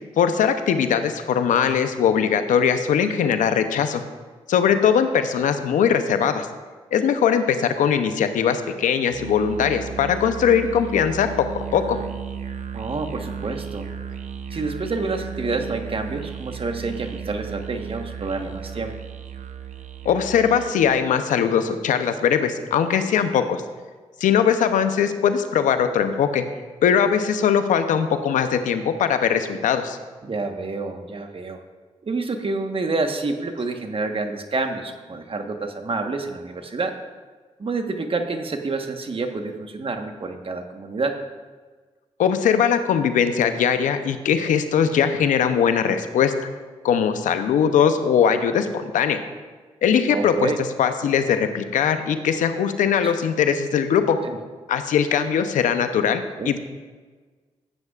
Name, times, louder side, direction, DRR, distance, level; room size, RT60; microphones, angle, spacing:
voice 1, 0.2-4.0 4.5-6.5 6.9-11.3 11.7-12.0 20.0-23.6 24.2-26.4 26.8-30.0 42.2-46.3 46.8-49.2 49.8-50.5 50.8-54.2 54.7-56.6, left 7 dB, 80° left, 9 dB, 0.7 m, -20 dB
Musical instrument, 9.1-20.8, right 7 dB, 65° right, 0.8 m, -35 dB
voice 2, 12.7-13.9 14.5-18.9 30.2-31.6 32.0-37.0 37.6-41.2 50.1-50.6 53.0-53.1 54.2-54.4 56.4-56.6, right 3 dB, 45° right, 5 dB, 1.2 m, -28 dB
15.0 x 9.7 x 2.4 m, 1.4 s
supercardioid pair, 45°, 13 cm